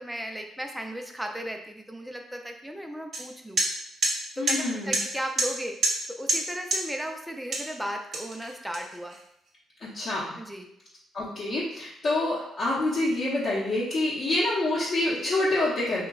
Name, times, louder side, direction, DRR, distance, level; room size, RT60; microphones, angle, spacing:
voice 1, 0.0-3.6 4.4-5.8 6.1-9.2 10.3-10.7, equal, 5° right, 3 dB, 0.4 m, -35 dB
sound 1, 3.1-3.2 3.6-3.7 4.0-4.1 4.5-4.6 4.9-5.0 5.4-5.5 5.8-6.0 6.3-6.4 6.7-6.8 7.5-7.7 8.1-9.2, right 2 dB, 60° right, 0.9 m, -25 dB
voice 2, 4.4-5.0 9.8-10.2 11.1-16.1, left 2 dB, 50° left, -8 dB, 0.8 m, -27 dB
2.9 x 2.2 x 3.5 m, 0.76 s
cardioid pair, 90°, 0 cm